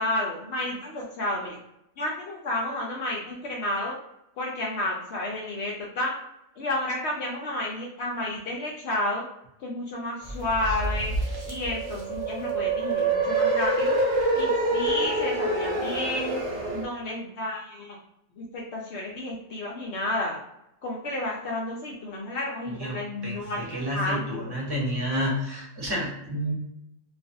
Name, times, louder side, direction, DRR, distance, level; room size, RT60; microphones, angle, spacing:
voice 1, 0.0-1.5 2.0-3.9 4.4-6.1 6.6-9.3 9.6-11.1 11.5-14.0 14.3-16.4 16.7-18.0 18.4-20.4 20.8-24.6, left 1 dB, 80° left, -2 dB, 0.6 m, -31 dB
sound 1, 10.3-16.8, right 2 dB, 90° right, 0.4 m, -26 dB
voice 2, 23.2-26.5, equal, 25° right, -3 dB, 0.5 m, -30 dB
2.4 x 2.3 x 2.6 m, 0.82 s
omnidirectional pair, 1.7 m